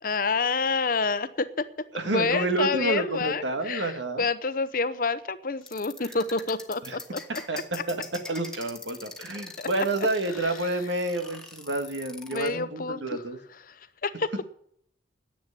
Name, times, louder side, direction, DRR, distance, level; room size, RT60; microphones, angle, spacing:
voice 1, 0.0-1.7 2.0-7.2 7.5-7.6 9.6-9.7 12.3-13.2 13.7-13.8 14.0-14.3, left 4 dB, 50° left, 13 dB, 0.8 m, -28 dB
voice 2, 1.9-4.2 6.9-7.0 7.5-7.6 7.9-8.0 8.3-13.4, right 2 dB, 80° right, 7 dB, 1.8 m, -29 dB
sound 1, 5.6-12.5, left 2 dB, 5° left, 1.4 m, -42 dB
10.5 x 8.3 x 9.8 m, 0.67 s
head